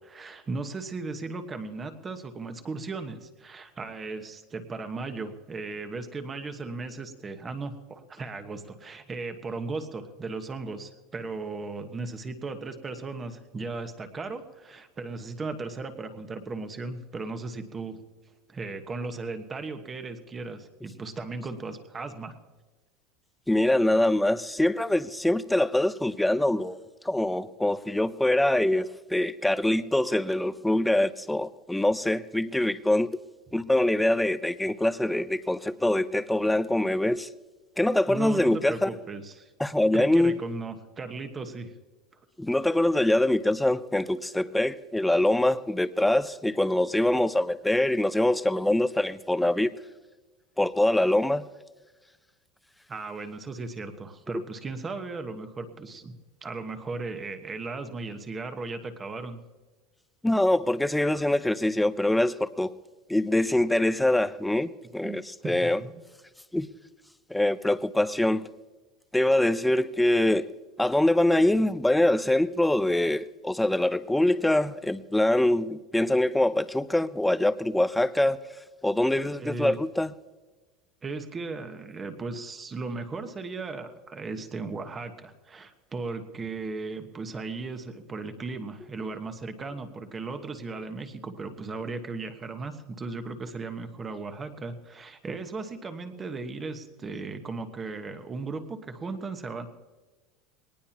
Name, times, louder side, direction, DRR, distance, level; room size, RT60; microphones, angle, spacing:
voice 1, 0.0-18.0 18.5-22.3 38.1-39.5 39.9-41.7 52.9-56.1 56.4-59.4 65.0-65.2 65.4-66.0 79.4-79.8 81.0-99.7, right 3 dB, 15° right, 1.2 m, -36 dB
voice 2, 23.5-26.8 27.0-33.2 33.5-37.3 37.8-38.9 39.6-40.4 42.4-49.7 50.6-51.4 60.2-62.7 63.1-65.8 66.5-66.7 67.3-68.5 69.1-70.5 70.8-78.4 78.8-80.1, left 1 dB, 5° left, 0.5 m, -24 dB
21.5 x 19.0 x 2.9 m
supercardioid pair, 165°, 0 cm